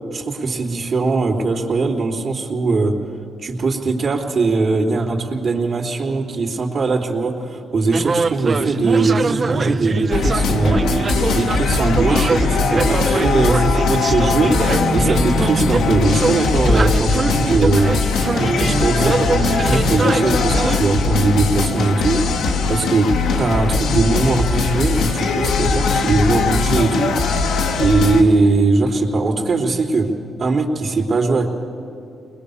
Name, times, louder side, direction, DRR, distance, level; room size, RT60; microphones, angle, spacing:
voice 1, 0.1-3.0 3.4-10.8 11.3-18.0 18.4-22.4 22.7-23.1 23.4-27.2 27.8-30.1 30.4-31.5, right 3 dB, 70° right, -9 dB, 2.9 m, -20 dB
sound 1, 7.9-20.8, right 4 dB, 45° right, 0.6 m, -23 dB
sound 2, 10.1-28.2, left 4 dB, 85° left, 1.4 m, -20 dB
21.0 x 21.0 x 7.0 m, 2.6 s
supercardioid pair, 60°, 0 cm